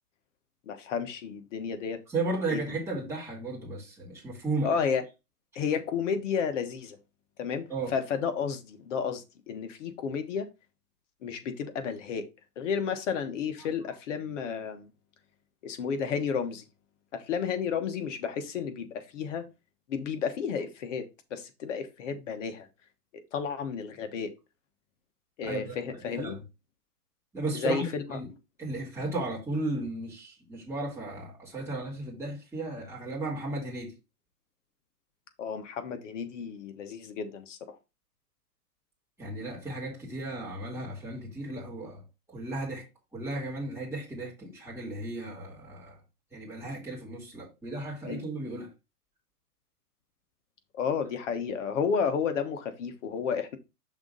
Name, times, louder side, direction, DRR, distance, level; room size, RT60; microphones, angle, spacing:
voice 1, 0.7-2.0 2.5-2.6 4.6-5.0 5.5-7.0 7.4-10.5 11.2-12.3 12.6-14.9 15.6-16.6 17.1-19.5 19.9-21.0 21.3-22.7 23.1-24.3 25.4-26.3 27.5-28.2 35.4-37.8 48.1-48.2 50.7-53.6, left 6 dB, 50° left, 1.3 m, -32 dB
voice 2, 2.1-4.7 7.7-7.9 25.4-26.4 27.3-28.3 28.6-33.9 39.2-42.0 42.3-42.8 43.1-46.0 46.3-48.7, right 2 dB, 5° right, 2.4 m, -35 dB
6.1 x 3.7 x 5.3 m
hypercardioid pair, 145°, 46 cm